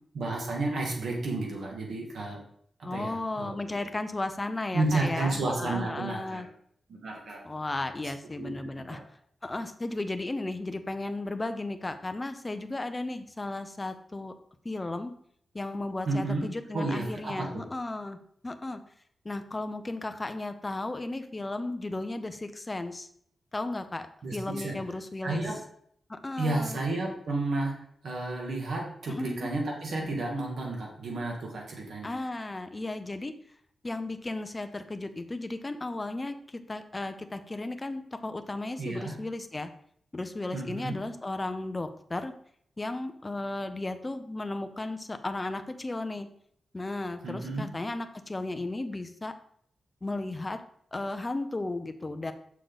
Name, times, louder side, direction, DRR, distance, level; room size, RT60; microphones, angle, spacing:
voice 1, 0.1-2.4 2.8-3.8 4.7-6.4 6.9-7.4 8.4-8.5 8.9-9.0 16.1-16.4 16.7-17.6 24.2-24.7 25.2-25.5 26.4-27.7 28.0-32.1 38.8-39.2 40.5-41.0 47.2-47.7, right 2 dB, 70° right, -1 dB, 2.2 m, -31 dB
voice 2, 2.8-6.5 7.4-9.0 9.4-14.3 14.6-15.1 15.5-18.2 18.4-18.8 19.2-23.1 23.5-25.4 26.1-26.8 29.1-29.5 32.0-33.3 33.8-39.7 40.1-42.3 42.8-46.3 46.7-49.3 50.0-50.6 50.9-52.3, left 2 dB, 20° left, 8 dB, 0.6 m, -35 dB
6.6 x 6.4 x 4.0 m, 0.65 s
wide cardioid pair, 165°, 0 cm